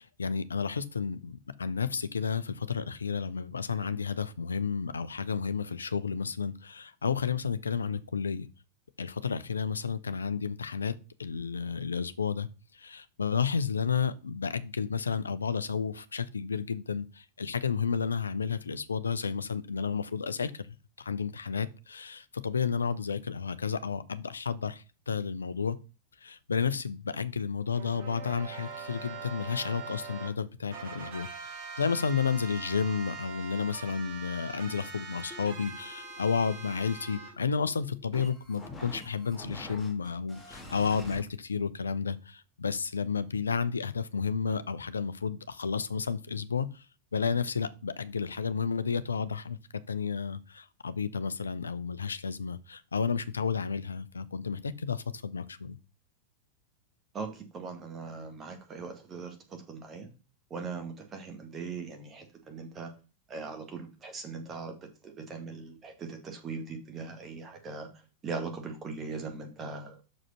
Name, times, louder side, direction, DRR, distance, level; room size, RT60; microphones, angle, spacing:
voice 1, 0.0-8.5 9.0-10.9 11.2-12.5 12.7-20.7 21.0-25.8 26.2-46.8 47.1-49.6 49.9-55.8, left 6 dB, 75° left, 0.6 m, -32 dB
sound 1, 27.7-30.3 30.7-37.3, right 5 dB, 45° right, 3.3 m, -43 dB
sound 2, 35.3-41.2, left 2 dB, 10° left, 2.0 m, -47 dB
voice 2, 57.1-60.1 60.5-62.9 63.3-64.8 65.0-67.9 68.2-70.0, right 4 dB, 25° right, 1.9 m, -40 dB
6.3 x 5.0 x 5.7 m
figure-of-eight pair, 90°, 0 cm